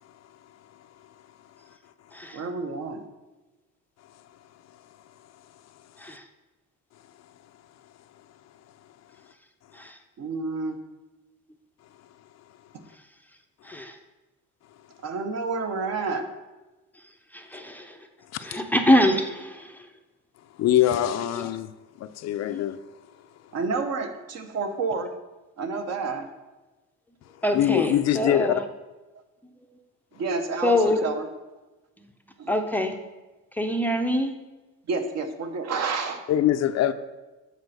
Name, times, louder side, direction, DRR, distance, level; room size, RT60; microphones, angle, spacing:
voice 1, 2.3-3.0 10.2-10.8 15.0-16.3 23.5-25.1 25.6-26.3 30.1-31.3 32.4-32.5 34.9-36.2, right 4 dB, 55° right, 7 dB, 1.0 m, -29 dB
voice 2, 17.3-17.9 18.4-19.7 27.4-28.6 30.6-31.0 32.5-32.9 33.6-34.3, left 1 dB, 5° left, 5 dB, 0.5 m, -24 dB
voice 3, 18.3-18.6 20.6-21.7 22.0-22.8 27.5-28.6 36.3-36.9, left 12 dB, 55° left, 10 dB, 0.5 m, -23 dB
8.2 x 4.3 x 6.6 m, 1.1 s
cardioid pair, 145°, 32 cm